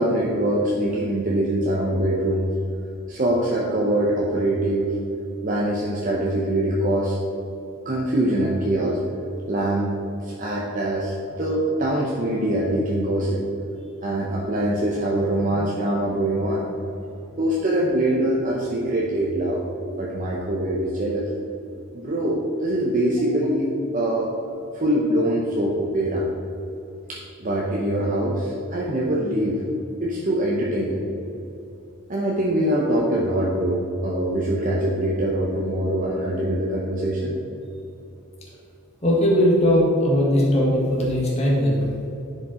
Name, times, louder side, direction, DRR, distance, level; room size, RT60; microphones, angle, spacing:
voice 1, 0.0-2.5 3.1-4.9 5.4-7.2 7.8-9.0 9.5-9.9 10.2-13.4 14.0-16.7 17.4-19.6 20.0-21.3 21.9-24.3 24.7-26.3 27.1-29.6 30.0-31.0 32.1-37.3, right 1 dB, 40° right, -4 dB, 0.9 m, -23 dB
voice 2, 39.0-41.8, equal, 30° left, -4 dB, 1.8 m, -19 dB
10.5 x 5.2 x 4.3 m, 2.9 s
head